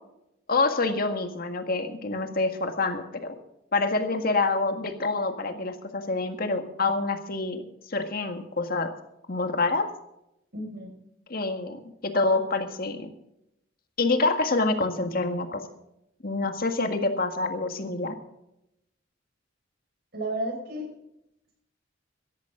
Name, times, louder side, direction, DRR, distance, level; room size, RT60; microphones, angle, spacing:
voice 1, 0.5-3.4 3.7-7.6 7.9-8.9 9.3-9.9 11.3-13.1 14.0-15.6 16.2-18.2, left 3 dB, 50° left, 6 dB, 1.8 m, -27 dB
voice 2, 10.5-10.9 20.1-20.9, right 1 dB, 55° right, 3 dB, 5.9 m, -32 dB
18.0 x 13.5 x 3.8 m, 0.82 s
head